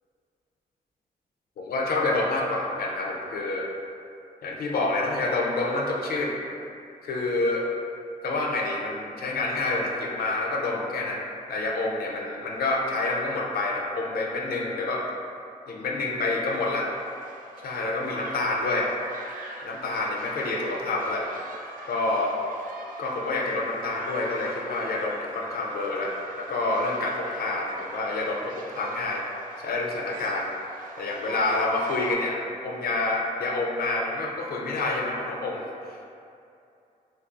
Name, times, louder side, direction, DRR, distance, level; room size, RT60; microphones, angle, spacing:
voice 1, 1.6-3.7 4.4-6.4 7.0-7.7 8.2-15.1 15.7-16.9 17.6-18.9 19.6-21.3 21.9-22.3 23.0-29.2 29.6-30.5 31.0-36.0, left 2 dB, 70° left, -1 dB, 0.5 m, -28 dB
sound 1, 16.5-32.1, right 3 dB, 60° right, 0.4 m, -43 dB
2.4 x 2.3 x 3.7 m, 2.6 s
cardioid pair, 90°, 16 cm